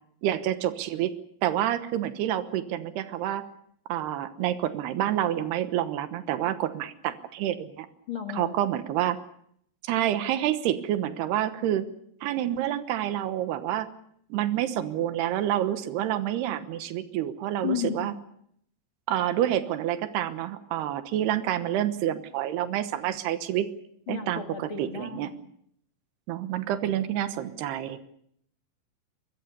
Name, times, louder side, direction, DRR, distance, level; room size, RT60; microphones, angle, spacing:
voice 1, 0.2-1.1 1.4-3.5 3.9-7.9 8.3-9.2 9.8-11.8 12.2-13.9 14.3-18.1 19.1-23.7 24.1-25.3 26.3-28.0, right 12 dB, 85° right, 11 dB, 3.2 m, -28 dB
voice 2, 8.1-8.5 17.6-18.2 24.1-25.4, left 8 dB, 40° left, 5 dB, 2.1 m, -33 dB
24.5 x 21.0 x 6.9 m, 0.69 s
omnidirectional pair, 4.6 m